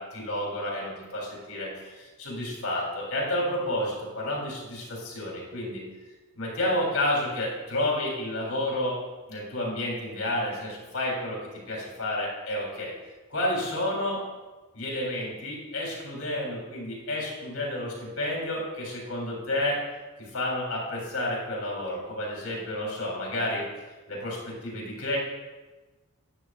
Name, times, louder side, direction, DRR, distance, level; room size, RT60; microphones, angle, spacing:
voice 1, 0.0-5.8 6.3-9.0 9.3-12.9 13.3-14.2 14.7-19.8 20.2-23.7 24.1-25.2, left 1 dB, 75° left, -3 dB, 3.5 m, -30 dB
12.0 x 10.0 x 2.5 m, 1.2 s
head